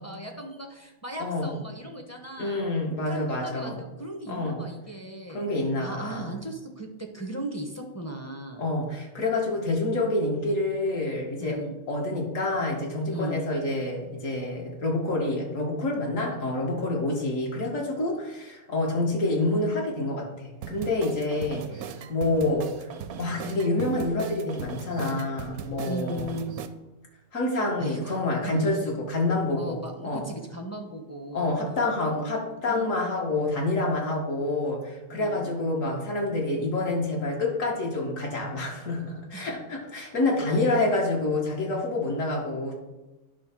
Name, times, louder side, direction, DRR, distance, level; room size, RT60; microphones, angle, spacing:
voice 1, 0.0-2.7 3.1-5.5 5.8-8.7 11.4-11.8 13.0-13.4 25.9-26.6 27.8-28.7 29.6-31.6 32.0-32.4 32.7-32.9 35.1-35.5 39.3-39.5 40.5-40.7, right 1 dB, 15° left, 3 dB, 0.7 m, -37 dB
voice 2, 1.2-1.5 2.4-3.8 4.3-4.6 5.3-6.3 8.6-11.6 11.9-22.7 23.2-26.3 27.3-30.2 31.3-42.7, left 2 dB, 65° left, -1 dB, 2.0 m, -27 dB
sound 1, 20.6-26.7, right 8 dB, 80° right, 1.1 m, -38 dB
10.0 x 3.5 x 6.0 m, 1.1 s
omnidirectional pair, 1.5 m